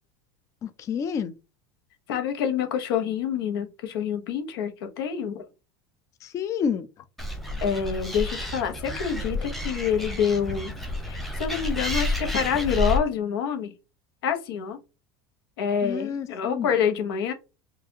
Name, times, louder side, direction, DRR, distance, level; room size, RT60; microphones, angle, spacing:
voice 1, 0.6-1.3 6.2-6.9 15.8-16.7, left 7 dB, 25° left, 0.3 m, -29 dB
voice 2, 2.1-4.7 5.0-5.4 7.6-10.7 11.0-13.7 14.2-14.8 15.6-17.3, left 7 dB, 85° left, 1.0 m, -27 dB
Animal, 7.2-13.0, left 1 dB, ahead, 0.8 m, -30 dB
4.8 x 2.4 x 2.8 m
supercardioid pair, 135°, 12 cm